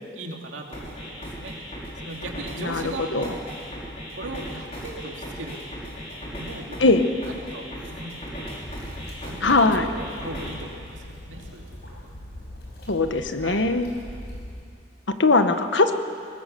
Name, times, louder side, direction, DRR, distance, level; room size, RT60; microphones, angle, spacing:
voice 1, 0.1-3.4 4.1-5.6 6.3-7.0 7.2-12.1 13.4-13.7, right 2 dB, 90° right, 1 dB, 2.8 m, -39 dB
sound 1, 0.7-10.7, equal, 35° left, 4.6 m, -37 dB
sound 2, 8.6-14.6, equal, 65° left, 5.0 m, -41 dB
voice 2, 9.4-9.8 12.9-13.9 15.2-15.9, left 3 dB, 80° left, 8 dB, 1.2 m, -20 dB
22.5 x 19.0 x 6.9 m, 2.4 s
head